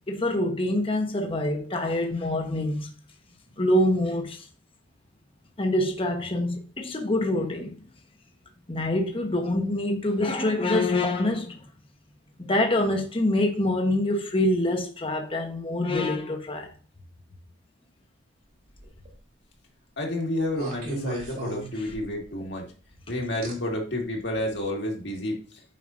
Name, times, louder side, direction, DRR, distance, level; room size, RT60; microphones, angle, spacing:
voice 1, 0.1-2.9 3.6-4.5 5.6-7.8 8.7-11.6 12.4-16.7 21.8-21.9 22.4-22.5, left 1 dB, 30° left, 1.0 m, -25 dB
sound 1, 18.7-19.2 20.5-22.3 23.4-23.5 24.4-24.5, right 1 dB, 50° right, 2.9 m, -36 dB
voice 2, 20.0-22.7 23.1-25.5, left 1 dB, 60° left, 2.0 m, -30 dB
8.5 x 5.6 x 2.6 m
head